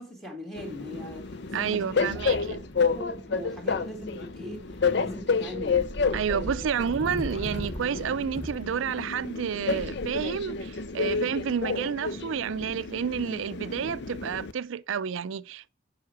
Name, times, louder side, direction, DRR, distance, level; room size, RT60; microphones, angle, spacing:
voice 1, 0.0-2.1 2.5-4.6 5.0-5.8 6.3-6.7, equal, ahead, 2.3 m, -40 dB
Train, 0.6-14.5, left 5 dB, 60° left, 0.6 m, -30 dB
voice 2, 1.5-2.6 6.1-15.7, right 7 dB, 85° right, 0.4 m, -30 dB
sound 1, 2.0-12.2, equal, 30° left, 1.0 m, -41 dB
7.8 x 5.6 x 4.7 m
head